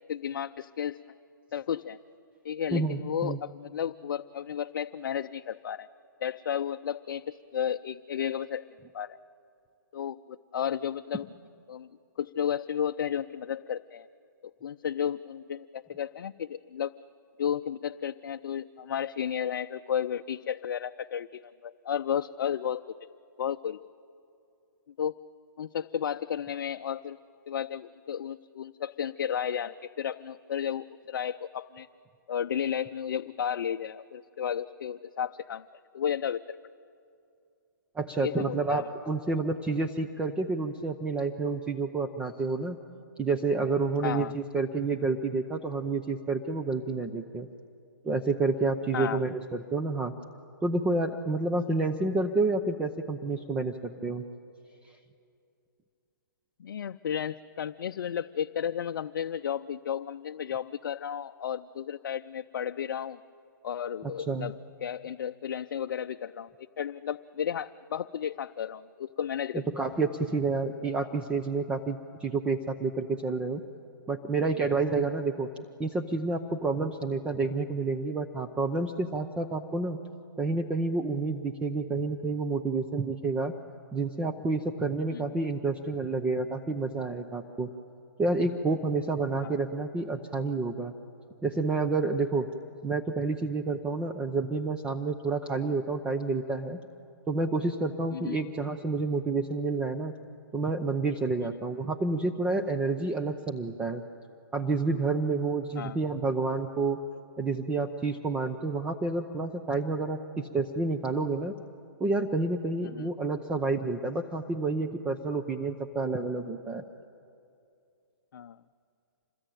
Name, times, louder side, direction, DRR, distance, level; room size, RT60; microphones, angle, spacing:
voice 1, 0.1-1.0 1.5-2.0 2.4-5.9 6.2-8.6 8.9-9.2 9.9-11.3 11.7-11.9 12.2-14.1 14.6-16.9 17.4-22.8 23.4-23.9 25.0-25.2 25.6-27.2 27.5-31.9 32.3-35.6 35.9-36.6 38.2-38.9 44.0-44.3 48.9-49.2 56.6-63.2 63.6-64.5 64.8-69.7 85.1-85.2 89.4-89.5 98.1-98.4 105.8-106.0 112.8-113.1 118.3-118.6, left 9 dB, 60° left, 7 dB, 0.6 m, -33 dB
voice 2, 2.7-3.4 37.9-42.8 43.2-47.5 48.0-50.1 50.6-54.2 64.0-64.5 69.5-73.6 74.1-75.5 75.8-80.0 80.4-83.5 83.9-87.7 88.2-90.9 91.4-92.5 92.8-96.8 97.3-100.1 100.5-104.0 104.5-107.0 107.4-111.5 112.0-116.8, right 3 dB, 10° right, 5 dB, 0.7 m, -29 dB
27.0 x 21.0 x 9.2 m, 2.5 s
hypercardioid pair, 150°, 11 cm